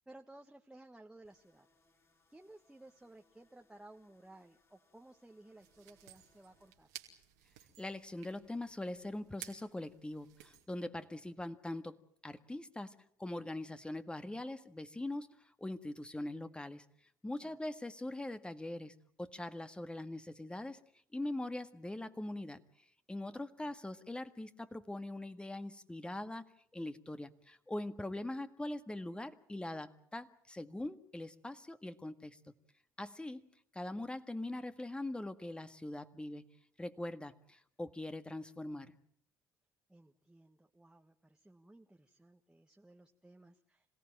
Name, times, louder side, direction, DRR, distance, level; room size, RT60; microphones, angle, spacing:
voice 1, 0.0-1.7 2.3-6.9 17.4-17.6 23.3-23.7 39.9-43.9, right 2 dB, 10° right, 2 dB, 1.5 m, -58 dB
sound 1, 1.2-6.8, left 3 dB, 35° left, 7.2 m, -74 dB
sound 2, 5.6-10.7, right 12 dB, 85° right, 2.5 m, -55 dB
voice 2, 7.8-12.0 12.2-16.8 17.2-20.8 21.1-22.6 23.1-26.4 26.7-32.5 33.0-36.5 36.8-38.9, left 1 dB, 10° left, 10 dB, 1.7 m, -42 dB
27.0 x 17.5 x 9.0 m, 0.67 s
hypercardioid pair, 60°, 8 cm